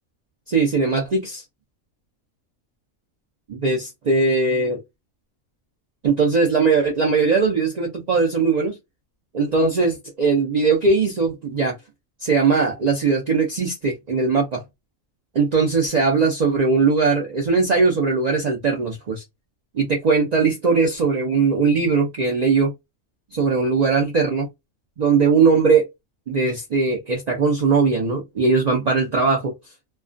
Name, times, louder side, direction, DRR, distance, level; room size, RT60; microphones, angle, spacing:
voice 1, 0.5-1.4 3.5-4.8 6.0-8.7 9.3-11.7 12.2-14.6 15.3-19.2 19.7-22.7 23.3-24.5 25.0-25.9 26.3-29.5, right 4 dB, 70° right, 0.4 m, -20 dB
2.3 x 2.2 x 2.4 m
omnidirectional pair, 1.4 m